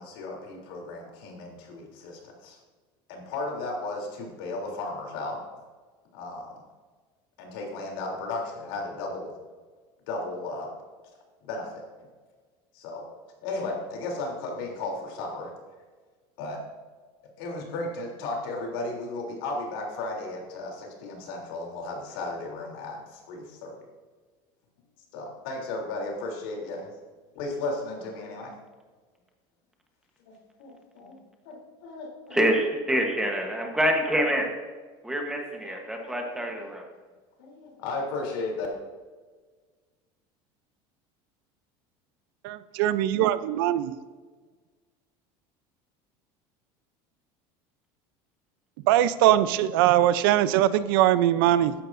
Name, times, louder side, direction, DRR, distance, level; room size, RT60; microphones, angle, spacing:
voice 1, 0.0-2.6 3.1-5.4 6.1-6.5 7.4-9.3 10.1-10.7 11.4-11.8 12.7-13.1 13.4-15.5 16.4-16.6 17.4-23.8 25.1-26.9 27.3-28.5 30.3-31.2 31.4-32.4 35.6-36.7 37.4-38.7, left 2 dB, 85° left, 0 dB, 3.4 m, -35 dB
voice 2, 32.3-34.5 35.0-36.8, equal, 5° right, 2 dB, 1.2 m, -26 dB
voice 3, 42.4-44.0 48.8-51.7, right 12 dB, 85° right, 14 dB, 0.6 m, -21 dB
14.0 x 10.5 x 2.7 m, 1.4 s
cardioid pair, 175°, 11 cm